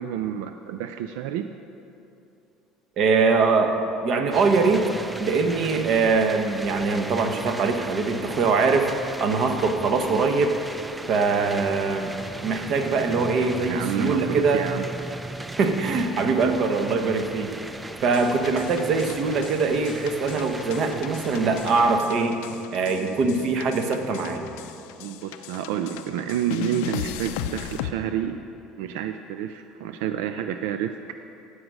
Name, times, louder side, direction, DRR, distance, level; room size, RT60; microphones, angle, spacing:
voice 1, 0.0-1.5 10.1-10.2 13.7-14.9 25.0-28.4 28.8-31.1, right 10 dB, 85° right, 8 dB, 0.3 m, -29 dB
voice 2, 3.0-4.9 5.2-8.9 9.2-10.5 11.1-12.1 12.4-14.6 15.6-17.5 18.0-22.5 22.7-24.5, right 4 dB, 50° right, 6 dB, 1.0 m, -22 dB
sound 1, 4.3-22.0, right 2 dB, 10° right, 0.4 m, -37 dB
sound 2, 18.1-27.9, left 11 dB, 90° left, 0.4 m, -38 dB
14.5 x 4.9 x 6.3 m, 2.7 s
cardioid pair, 130°, 0 cm